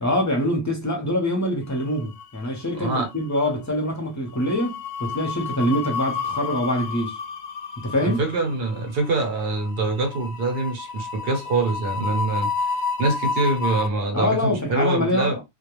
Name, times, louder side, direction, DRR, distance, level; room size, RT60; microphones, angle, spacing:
voice 1, 0.0-7.2 7.8-8.2 14.1-15.4, left 1 dB, 20° left, 0.6 m, -24 dB
sound 1, 1.8-2.6 2.9-3.1 4.3-13.9, left 5 dB, 70° left, 0.7 m, -30 dB
voice 2, 2.7-3.1 8.0-12.5 13.0-15.4, right 2 dB, 65° right, 0.9 m, -24 dB
2.2 x 2.2 x 3.0 m
omnidirectional pair, 1.1 m